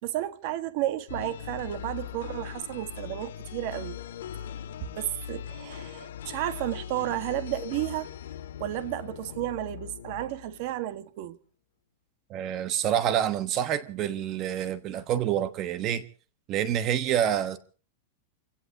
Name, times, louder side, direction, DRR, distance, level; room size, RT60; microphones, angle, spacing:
voice 1, 0.0-4.0 4.9-8.1 8.6-11.4, right 14 dB, 45° right, 1.5 m, -32 dB
sound 1, 1.1-10.9, left 9 dB, 90° left, 2.0 m, -40 dB
voice 2, 12.3-16.0 16.5-17.6, right 10 dB, 30° right, 1.1 m, -27 dB
29.5 x 17.0 x 2.8 m
supercardioid pair, 165°, 0 cm